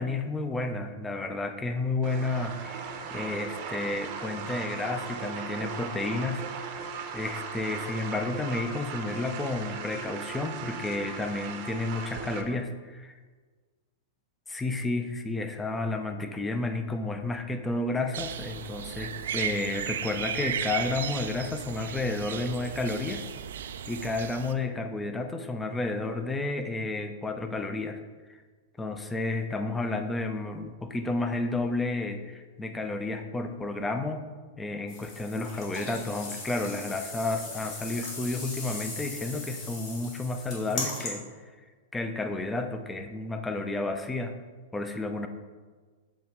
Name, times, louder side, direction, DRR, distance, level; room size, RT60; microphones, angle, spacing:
voice 1, 0.0-6.4 7.1-13.1 14.5-23.3 23.9-28.0 28.8-34.2 34.6-41.2 41.9-44.3 44.7-45.3, left 2 dB, 10° left, 6 dB, 0.5 m, -31 dB
sound 1, 2.0-12.4, right 5 dB, 45° right, 0.7 m, -38 dB
sound 2, 18.1-24.5, right 8 dB, 70° right, 0.3 m, -35 dB
sound 3, 34.9-41.1, left 2 dB, 45° left, 1.9 m, -39 dB
7.4 x 3.1 x 4.4 m, 1.4 s
hypercardioid pair, 105°, 0 cm